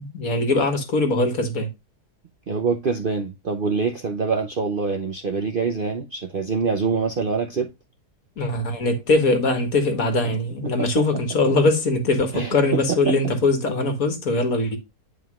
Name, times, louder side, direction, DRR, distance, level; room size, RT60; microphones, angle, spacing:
voice 1, 0.0-1.7 8.4-14.8, left 2 dB, 60° left, 1.9 m, -21 dB
voice 2, 2.5-7.7 10.6-10.7 11.5-11.6 12.3-12.5 13.1-13.2, right 5 dB, 50° right, 0.7 m, -25 dB
9.3 x 5.0 x 2.4 m
omnidirectional pair, 1.7 m